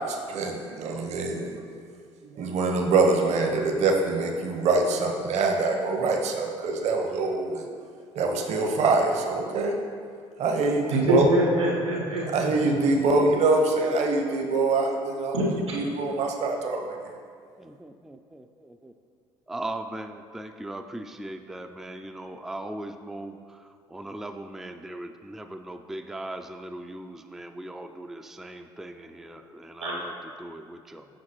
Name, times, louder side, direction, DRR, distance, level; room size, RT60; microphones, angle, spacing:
voice 1, 0.0-1.6 2.3-7.6 8.1-9.7 10.4-11.3 12.3-15.4 15.7-16.8, right 3 dB, 50° right, 3 dB, 0.8 m, -24 dB
voice 2, 11.1-12.5 15.3-15.8 29.8-29.9, equal, 90° right, -3 dB, 1.4 m, -24 dB
voice 3, 17.6-18.9 19.5-31.1, right 1 dB, ahead, 7 dB, 0.3 m, -39 dB
7.5 x 5.7 x 3.0 m, 2.2 s
hypercardioid pair, 55°, 14 cm